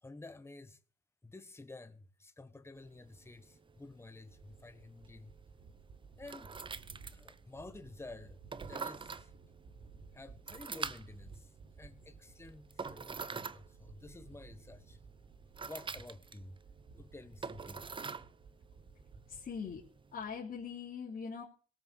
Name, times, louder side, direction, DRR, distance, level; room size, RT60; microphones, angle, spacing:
voice 1, 0.0-0.8 1.2-5.3 6.2-6.6 7.1-9.3 10.1-15.0 15.7-16.6 16.9-17.8, left 2 dB, 10° left, 1.2 m, -51 dB
sound 1, 2.8-20.3, right 5 dB, 25° right, 0.7 m, -47 dB
sound 2, 4.3-19.9, right 5 dB, 65° right, 3.8 m, -57 dB
voice 2, 19.3-19.8 20.1-21.4, left 6 dB, 50° left, 3.2 m, -41 dB
17.5 x 7.1 x 6.9 m
cardioid pair, 90°, 20 cm